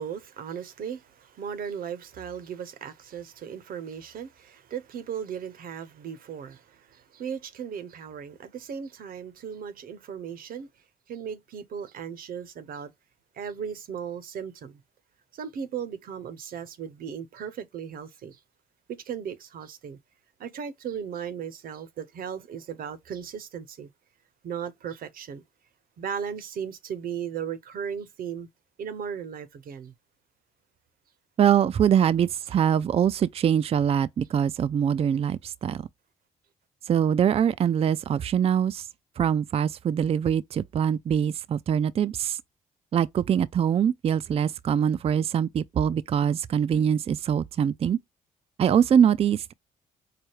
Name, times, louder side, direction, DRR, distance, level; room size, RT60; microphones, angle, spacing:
voice 1, 0.0-10.7 11.1-12.9 13.3-14.8 15.3-18.4 18.9-20.0 20.4-23.9 24.4-25.4 26.0-28.5 28.8-29.9, right 7 dB, 60° right, 0.9 m, -36 dB
voice 2, 31.4-35.8 36.9-38.9 39.2-42.4 42.9-48.0 48.6-49.5, right 8 dB, 40° right, 0.4 m, -23 dB
4.8 x 2.2 x 3.0 m
supercardioid pair, 60°, 16 cm